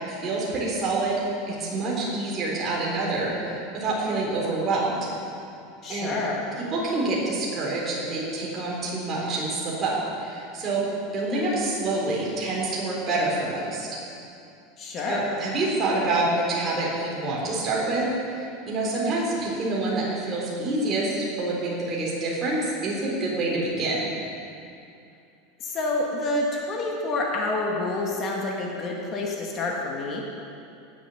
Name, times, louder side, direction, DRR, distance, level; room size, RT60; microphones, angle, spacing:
voice 1, 0.1-5.1 5.9-6.2 6.7-10.8 11.1-14.0 15.1-24.0, right 2 dB, 25° right, -4 dB, 3.7 m, -27 dB
voice 2, 5.8-6.4 11.2-11.6 14.8-15.3 25.6-30.2, left 2 dB, 30° left, -1 dB, 1.7 m, -28 dB
18.5 x 7.3 x 7.0 m, 2.6 s
supercardioid pair, 160°, 0 cm